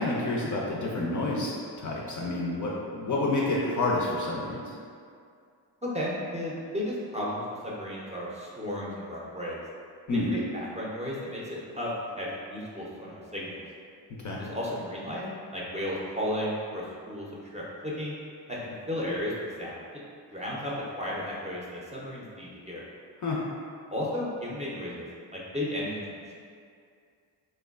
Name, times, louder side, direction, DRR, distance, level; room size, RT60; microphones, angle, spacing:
voice 1, 0.0-4.7 10.1-10.3 14.2-14.4 23.2-23.4, left 2 dB, 40° left, -4 dB, 0.5 m, -29 dB
voice 2, 5.8-9.6 10.3-13.6 14.4-15.2 15.5-18.1 18.5-19.3 19.6-19.8 20.3-22.8 23.9-26.3, left 1 dB, 15° right, -6 dB, 0.5 m, -34 dB
3.0 x 2.1 x 2.3 m, 2.3 s
supercardioid pair, 50°, 48 cm